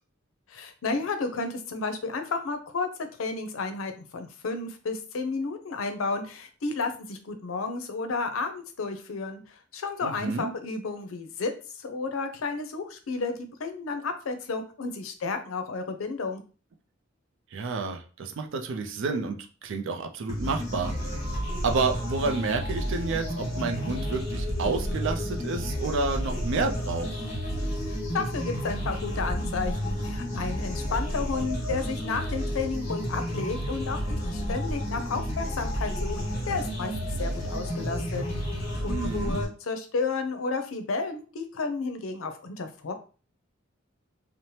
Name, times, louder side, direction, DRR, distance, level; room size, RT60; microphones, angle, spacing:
voice 1, 0.5-2.9 3.2-9.4 9.7-16.4 27.9-36.2 36.5-36.9 37.2-38.2 38.8-42.9, left 4 dB, 85° left, 7 dB, 0.5 m, -32 dB
voice 2, 10.0-10.5 17.5-21.2 21.6-27.1 38.9-39.4, right 4 dB, 65° right, 5 dB, 0.4 m, -30 dB
sound 1, 20.3-39.4, equal, 35° left, 1.2 m, -31 dB
2.7 x 2.0 x 3.1 m, 0.36 s
head